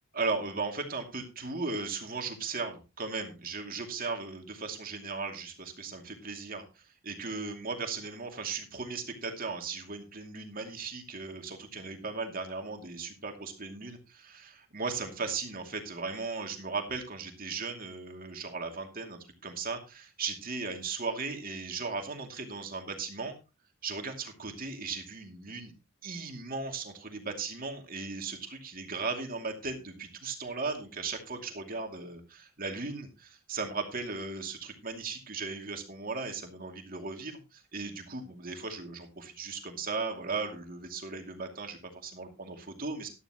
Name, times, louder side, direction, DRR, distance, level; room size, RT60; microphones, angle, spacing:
voice 1, 0.1-23.4 23.8-25.7 26.0-43.1, right 4 dB, 40° right, 4 dB, 2.5 m, -37 dB
13.0 x 12.0 x 3.0 m, 0.29 s
head